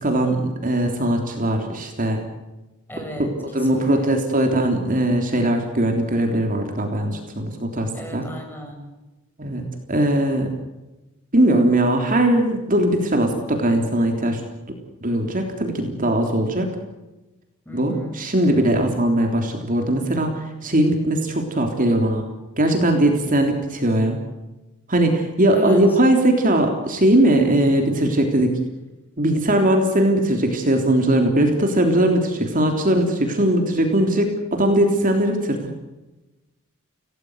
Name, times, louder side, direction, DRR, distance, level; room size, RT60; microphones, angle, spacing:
voice 1, 0.0-2.2 3.2-8.3 9.4-10.5 11.3-14.4 15.0-16.8 17.7-22.2 22.6-24.2 24.9-28.6 29.2-35.6, right 1 dB, 40° right, 4 dB, 3.4 m, -20 dB
voice 2, 2.9-4.2 7.9-8.8 17.7-18.2 18.6-18.8 25.5-25.9, equal, 10° left, 2 dB, 6.8 m, -34 dB
28.5 x 18.0 x 8.1 m, 1.1 s
head